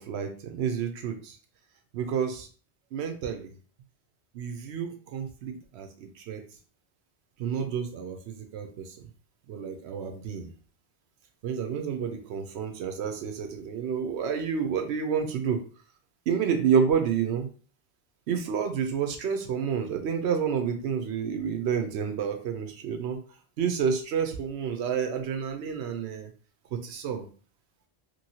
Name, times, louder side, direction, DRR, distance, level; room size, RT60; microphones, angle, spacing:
voice 1, 0.0-1.4 1.9-2.5 2.9-3.5 4.3-6.4 7.4-8.9 9.5-10.5 11.4-15.6 16.3-17.5 18.3-23.2 23.6-26.3 26.7-27.3, right 7 dB, 80° right, 5 dB, 0.9 m, -29 dB
3.0 x 2.6 x 2.7 m, 0.39 s
omnidirectional pair, 1.1 m